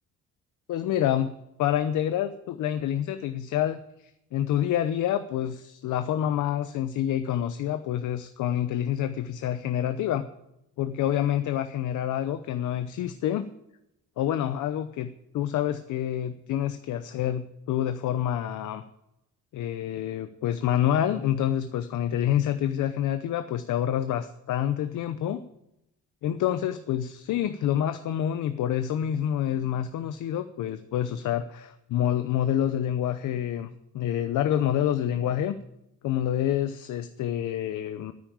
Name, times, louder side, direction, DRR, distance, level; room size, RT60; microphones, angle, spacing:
voice 1, 0.7-10.3 10.8-13.4 14.2-18.8 19.5-25.4 26.2-33.7 33.9-35.6 36.0-38.1, left 11 dB, 80° left, 10 dB, 0.8 m, -27 dB
9.7 x 9.1 x 8.8 m, 0.84 s
cardioid pair, 90°, 30 cm